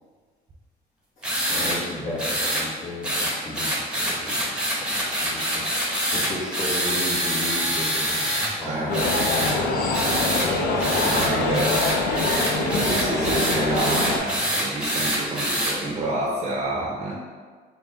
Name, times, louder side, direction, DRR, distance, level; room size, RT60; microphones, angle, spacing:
voice 1, 1.2-9.2 10.9-11.7, left 1 dB, 45° left, -11 dB, 1.0 m, -35 dB
sound 1, 1.2-1.8 2.2-2.6 3.0-8.5 8.9-9.5 9.9-10.5 10.8-15.7, equal, 5° right, 0.9 m, -25 dB
voice 2, 8.4-9.1 9.8-11.8 12.8-17.1, right 2 dB, 40° right, -3 dB, 0.7 m, -29 dB
sound 2, 8.9-14.2, left 2 dB, 65° left, 0.6 m, -24 dB
3.7 x 2.1 x 4.0 m, 1.5 s
cardioid pair, 110°, 17 cm